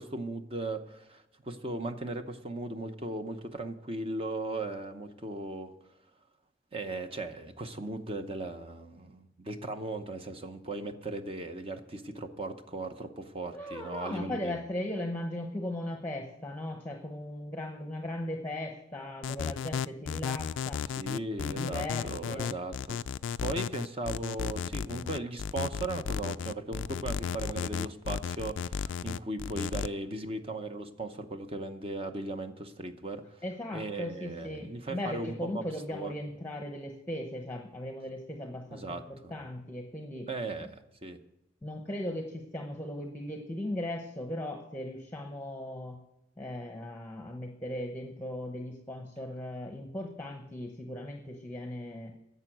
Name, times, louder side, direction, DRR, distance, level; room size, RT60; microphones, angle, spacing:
voice 1, 0.0-5.7 6.7-14.6 21.0-23.0 23.4-33.4 33.7-35.6 35.9-36.1 38.7-39.3 40.3-40.7 41.0-41.2, right 2 dB, 30° right, 7 dB, 0.8 m, -37 dB
voice 2, 13.4-20.8 21.5-22.5 33.4-40.3 41.6-46.0 46.4-52.1, left 1 dB, 10° left, 3 dB, 0.9 m, -38 dB
sound 1, 19.2-29.9, left 7 dB, 70° left, 0.3 m, -34 dB
10.5 x 7.0 x 9.0 m, 0.87 s
head